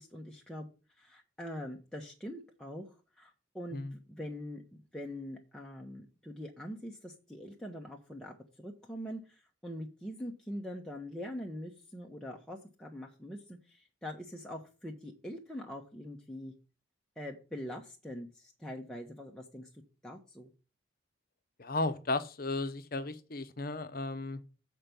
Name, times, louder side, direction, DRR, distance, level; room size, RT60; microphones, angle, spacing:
voice 1, 0.0-16.5 17.2-20.5, equal, 5° left, 0.8 m, -43 dB
voice 2, 21.6-24.4, left 2 dB, 50° left, 0.8 m, -35 dB
7.5 x 4.6 x 6.7 m
head